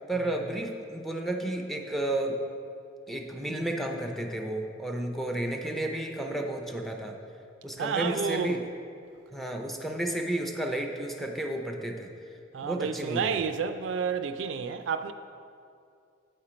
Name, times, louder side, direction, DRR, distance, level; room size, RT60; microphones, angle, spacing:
voice 1, 0.1-2.4 3.1-7.2 7.6-8.6 9.3-12.1 12.6-13.4, right 1 dB, ahead, 0.5 m, -32 dB
voice 2, 7.8-8.6 12.5-15.1, right 6 dB, 70° right, 0.3 m, -30 dB
8.0 x 4.3 x 5.0 m
head